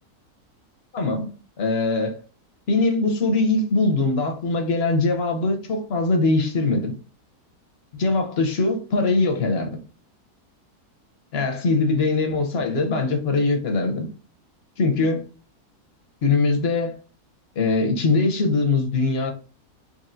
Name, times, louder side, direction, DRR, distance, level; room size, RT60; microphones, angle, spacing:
voice 1, 0.9-1.3 1.6-2.2 2.7-6.9 8.0-9.7 11.3-14.1 14.8-15.3 16.2-17.0 17.6-19.3, left 3 dB, 50° left, 0.9 m, -22 dB
4.3 x 3.1 x 2.6 m
omnidirectional pair, 1.6 m